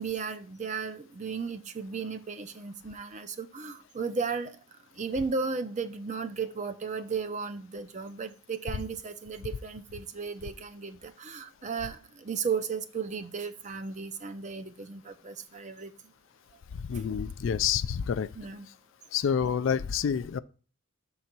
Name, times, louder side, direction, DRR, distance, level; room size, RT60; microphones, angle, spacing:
voice 1, 0.0-4.6 5.0-15.9 18.3-18.7, right 5 dB, 35° right, 0.6 m, -35 dB
voice 2, 16.9-18.3 19.1-20.4, left 7 dB, 65° left, 0.3 m, -28 dB
6.4 x 4.0 x 5.9 m
head